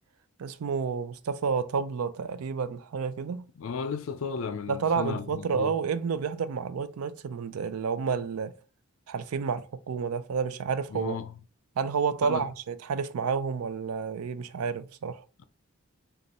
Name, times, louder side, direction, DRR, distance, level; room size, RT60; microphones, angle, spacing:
voice 1, 0.4-3.4 4.7-8.5 9.1-11.2 11.8-15.2, right 6 dB, 85° right, 0.4 m, -30 dB
voice 2, 3.6-5.8 10.9-11.3 12.2-12.5, left 5 dB, 70° left, 0.4 m, -34 dB
5.2 x 2.4 x 2.9 m
head